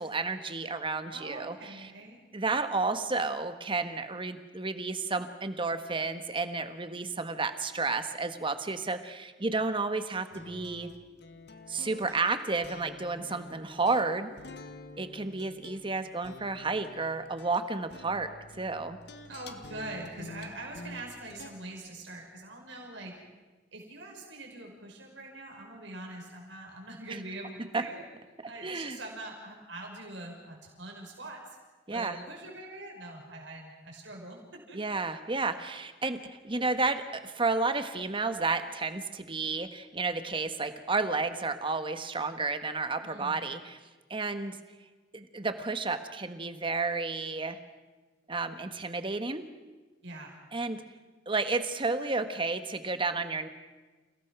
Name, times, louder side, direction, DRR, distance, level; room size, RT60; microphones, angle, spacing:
voice 1, 0.0-1.9 2.3-10.9 11.7-14.4 15.0-18.3 18.6-19.0 27.7-27.8 28.6-29.0 31.9-32.1 34.7-36.2 36.4-43.8 44.1-44.6 45.1-47.6 48.3-49.4 50.5-50.8 51.3-53.5, right 3 dB, 30° right, 9 dB, 1.4 m, -31 dB
voice 2, 1.1-2.2 19.3-23.1 23.7-28.0 28.5-31.4 31.9-34.8 43.0-43.4 50.0-50.4, right 2 dB, 80° right, 0 dB, 5.4 m, -43 dB
sound 1, 10.3-21.5, left 2 dB, 65° left, 1.7 m, -49 dB
29.5 x 17.0 x 6.1 m, 1.3 s
head